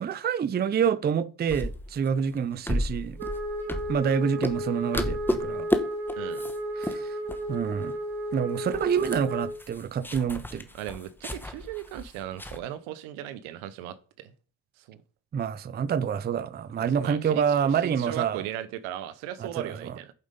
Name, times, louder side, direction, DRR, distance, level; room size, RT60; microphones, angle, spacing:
voice 1, 0.0-3.2 3.9-5.7 6.8-7.1 7.5-8.0 8.3-10.6 15.3-18.4 19.4-20.0, right 7 dB, 20° right, 0.4 m, -27 dB
sound 1, 1.5-4.2 4.4-4.7 4.9-5.8 6.1-6.6 6.8-7.0 7.3-7.8 8.1-8.2 8.5-12.6, left 1 dB, 5° left, 0.9 m, -32 dB
Wind instrument woodwind instrument, 3.2-9.6, equal, 70° right, 2.0 m, -33 dB
voice 2, 10.7-14.3 14.9-15.0 16.8-20.1, right 12 dB, 90° right, 0.9 m, -37 dB
7.9 x 5.4 x 5.2 m
cardioid pair, 90°, 47 cm